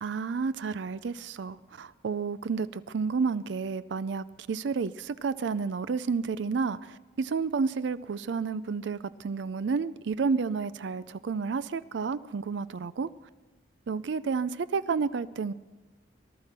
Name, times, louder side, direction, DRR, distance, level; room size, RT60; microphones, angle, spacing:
voice 1, 0.0-13.1 13.9-15.5, right 5 dB, 65° right, 15 dB, 0.4 m, -31 dB
19.0 x 12.5 x 6.0 m, 1.2 s
head